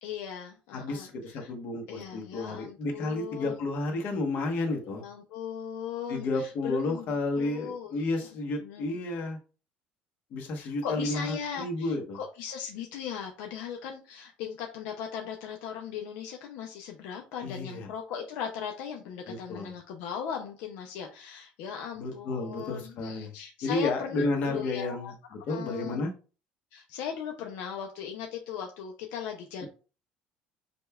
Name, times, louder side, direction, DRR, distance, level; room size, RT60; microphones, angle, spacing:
voice 1, 0.0-1.5 1.9-3.6 4.8-8.3 8.6-9.0 10.5-25.1 25.5-26.0 26.7-29.6, left 7 dB, 80° left, 3 dB, 0.5 m, -38 dB
voice 2, 0.7-5.0 6.1-9.4 10.3-12.2 17.4-17.9 19.3-19.7 21.9-23.3 23.6-25.1 25.5-26.1, left 2 dB, 55° left, 2 dB, 1.0 m, -31 dB
5.1 x 2.2 x 2.2 m, 0.35 s
cardioid pair, 130°, 4 cm